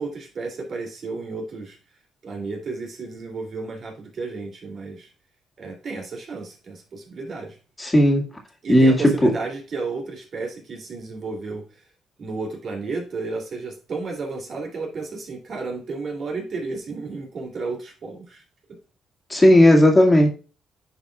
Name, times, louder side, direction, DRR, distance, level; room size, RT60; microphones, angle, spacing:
voice 1, 0.0-1.8 2.2-5.1 5.6-7.6 8.6-11.8 12.2-18.4, right 3 dB, 55° right, 2.7 m, -32 dB
voice 2, 7.8-8.2 8.7-8.9 9.2-9.3 19.3-20.3, left 1 dB, 15° left, 2.0 m, -14 dB
10.0 x 5.1 x 2.3 m
cardioid pair, 90°, 0 cm